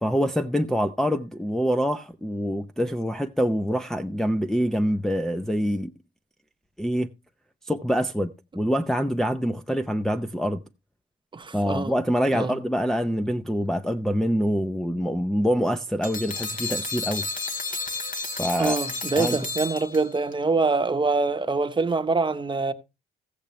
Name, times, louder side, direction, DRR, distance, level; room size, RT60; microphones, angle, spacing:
voice 1, 0.0-5.9 6.8-7.1 7.7-10.6 11.5-17.2 18.4-18.8 19.2-19.4, equal, ahead, 0.5 m, -25 dB
voice 2, 11.3-11.9 12.3-12.5 18.6-22.7, right 3 dB, 25° right, 1.0 m, -25 dB
sound 1, 16.0-20.3, left 3 dB, 45° left, 2.0 m, -31 dB
15.0 x 8.0 x 3.2 m
cardioid pair, 90°, 20 cm